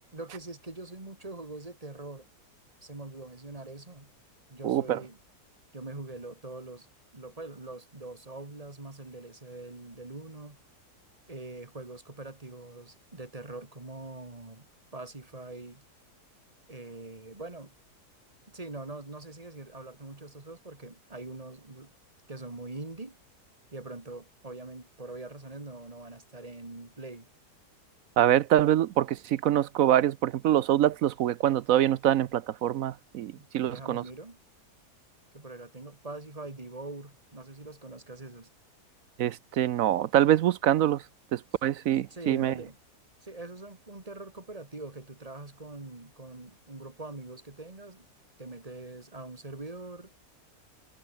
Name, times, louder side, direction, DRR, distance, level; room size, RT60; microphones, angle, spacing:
voice 1, 0.1-2.3 2.8-4.1 4.5-5.2 5.7-6.9 7.1-10.6 11.3-14.7 14.9-15.8 16.7-17.7 18.5-21.9 22.3-23.2 23.7-27.3 33.4-34.4 35.3-38.5 42.1-42.8 43.2-48.1 48.4-50.2, right 2 dB, 20° right, 2.5 m, -43 dB
voice 2, 4.6-5.0 28.2-34.0 39.2-41.0 41.3-42.5, right 12 dB, 65° right, 0.9 m, -25 dB
omnidirectional pair, 1.7 m